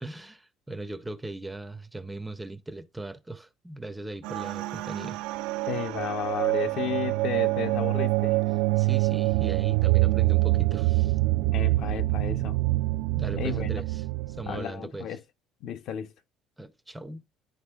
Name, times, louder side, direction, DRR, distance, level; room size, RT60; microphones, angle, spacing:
voice 1, 0.0-5.2 8.8-11.2 13.1-15.1 16.6-17.2, right 2 dB, 5° right, 0.5 m, -39 dB
sound 1, 4.2-14.6, right 20 dB, 85° right, 0.4 m, -25 dB
voice 2, 5.7-8.3 11.5-12.6 13.4-13.8 14.5-15.2 15.6-16.1, left 9 dB, 55° left, 0.6 m, -33 dB
11.5 x 4.0 x 2.3 m
cardioid pair, 155°, 0 cm